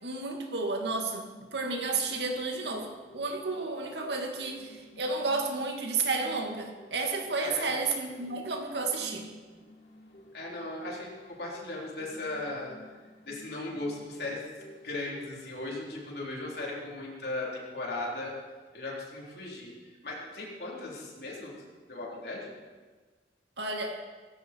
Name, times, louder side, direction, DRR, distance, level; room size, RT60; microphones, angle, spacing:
voice 1, 0.0-9.3 23.6-24.0, right 3 dB, 75° right, 3 dB, 2.3 m, -32 dB
sound 1, 1.0-17.1 17.5-17.6, equal, 75° left, 3.3 m, -54 dB
voice 2, 7.4-7.8 10.3-12.8 13.2-14.5 14.8-18.3 18.7-21.5 21.9-22.5, left 2 dB, 60° left, -3 dB, 4.3 m, -37 dB
17.5 x 15.5 x 4.7 m, 1.4 s
head